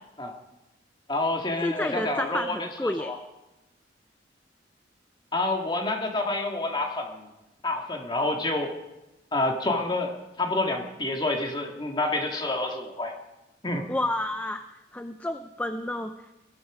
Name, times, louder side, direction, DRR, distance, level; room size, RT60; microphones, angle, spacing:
voice 1, 1.1-3.2 5.3-7.3 7.6-8.7 9.3-10.1 10.4-13.2 13.6-13.9, left 2 dB, 25° left, 2 dB, 2.0 m, -28 dB
voice 2, 1.6-3.1 13.9-14.6 14.9-16.4, left 1 dB, 10° left, 8 dB, 0.5 m, -30 dB
21.0 x 13.5 x 5.1 m, 0.98 s
head